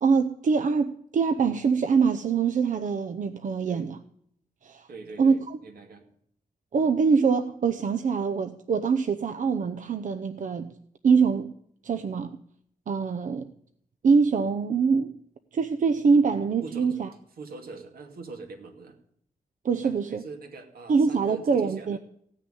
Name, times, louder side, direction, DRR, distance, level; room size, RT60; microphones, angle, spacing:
voice 1, 0.0-4.0 4.6-4.9 5.2-5.4 6.7-10.8 11.0-11.5 11.8-12.4 12.9-13.5 14.0-15.2 15.5-17.1 19.6-20.2 20.9-22.0, right 5 dB, 55° right, 8 dB, 0.7 m, -24 dB
voice 2, 4.9-6.1 16.6-17.1 17.4-19.0 19.8-22.0, right 3 dB, 80° right, 4 dB, 2.5 m, -43 dB
16.0 x 6.7 x 9.9 m, 0.69 s
wide cardioid pair, 120°, 15 cm